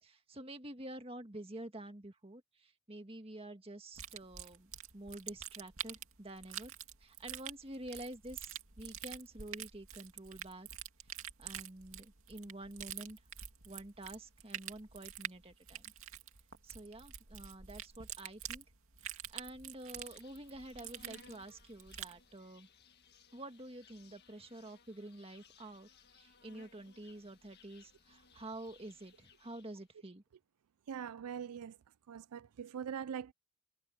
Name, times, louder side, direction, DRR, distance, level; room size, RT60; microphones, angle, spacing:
voice 1, 0.0-6.7 7.0-10.7 11.4-13.2 13.6-15.9 16.6-18.7 19.3-22.7 23.3-30.2, right 1 dB, 25° right, 1.8 m, -49 dB
sound 1, 3.9-22.2, right 10 dB, 65° right, 2.5 m, -47 dB
Insect, 20.0-29.9, left 4 dB, 45° left, 1.8 m, -63 dB
voice 2, 30.9-31.8 32.1-33.3, right 8 dB, 85° right, 0.4 m, -42 dB
head